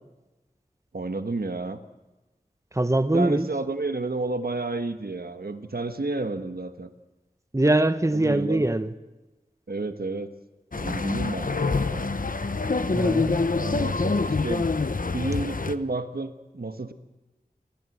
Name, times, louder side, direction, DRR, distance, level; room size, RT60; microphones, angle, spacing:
voice 1, 0.9-1.8 3.1-6.9 8.1-8.6 9.7-10.3 10.7-12.1 13.6-14.7 15.1-16.9, right 3 dB, 75° right, 1.5 m, -31 dB
voice 2, 2.7-3.5 7.5-8.9 12.9-13.5, right 1 dB, 20° right, 1.1 m, -23 dB
sound 1, 10.7-15.7, left 3 dB, 60° left, 0.9 m, -26 dB
28.0 x 14.5 x 8.0 m
wide cardioid pair, 55°, 16 cm